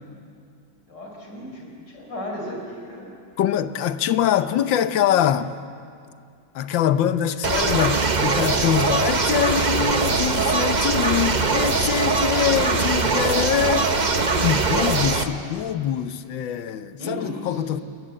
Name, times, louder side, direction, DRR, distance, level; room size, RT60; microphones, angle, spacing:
voice 1, 0.9-3.1 17.0-17.6, equal, 65° left, 5.7 m, -35 dB
voice 2, 3.4-5.6 6.5-13.9 14.4-17.8, left 10 dB, 90° left, 1.6 m, -24 dB
sound 1, 7.4-15.2, right 3 dB, 30° right, 1.0 m, -21 dB
29.5 x 21.5 x 7.6 m
omnidirectional pair, 2.0 m